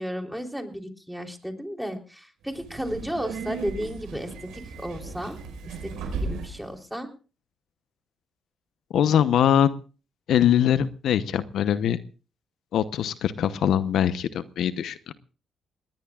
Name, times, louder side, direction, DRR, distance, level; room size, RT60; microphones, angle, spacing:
voice 1, 0.0-5.4 5.8-5.9 6.2-7.1, equal, ahead, 3 dB, 3.6 m, -33 dB
Subway metro underground, 2.5-6.7, right 4 dB, 85° right, 5.6 m, -36 dB
voice 2, 8.9-9.7 10.3-12.0 12.7-15.1, left 10 dB, 75° left, 13 dB, 0.8 m, -22 dB
20.0 x 19.5 x 2.4 m, 0.36 s
cardioid pair, 90°, 0 cm